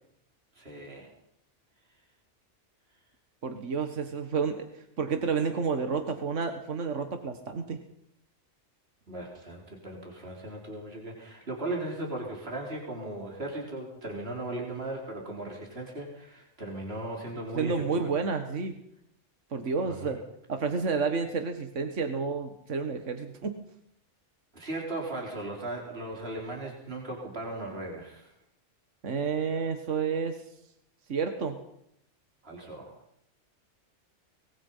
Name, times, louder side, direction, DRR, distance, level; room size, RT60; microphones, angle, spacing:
voice 1, 0.5-1.1 9.1-18.1 19.9-20.2 24.5-28.3 32.4-32.9, right 2 dB, 50° right, 0 dB, 4.6 m, -37 dB
voice 2, 3.4-7.8 17.5-18.8 19.5-20.2 20.5-23.6 29.0-30.4 31.1-31.6, right 5 dB, 75° right, 7 dB, 1.9 m, -30 dB
23.5 x 21.5 x 5.7 m, 0.77 s
omnidirectional pair, 1.3 m